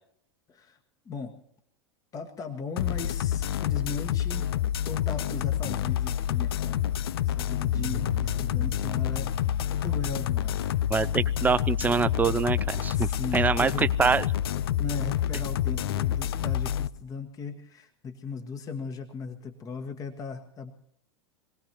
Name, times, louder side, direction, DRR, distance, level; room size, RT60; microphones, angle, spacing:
voice 1, 1.0-1.4 2.1-6.9 7.2-10.7 12.9-14.2 14.8-20.7, left 5 dB, 25° left, 5 dB, 1.5 m, -38 dB
sound 1, 2.8-16.9, left 11 dB, 60° left, 0.6 m, -28 dB
sound 2, 7.7-14.6, left 4 dB, 75° right, 1.6 m, -41 dB
voice 2, 10.9-14.3, right 5 dB, 10° right, 16 dB, 0.6 m, -25 dB
25.5 x 18.5 x 2.9 m, 0.70 s
figure-of-eight pair, 95°, 14 cm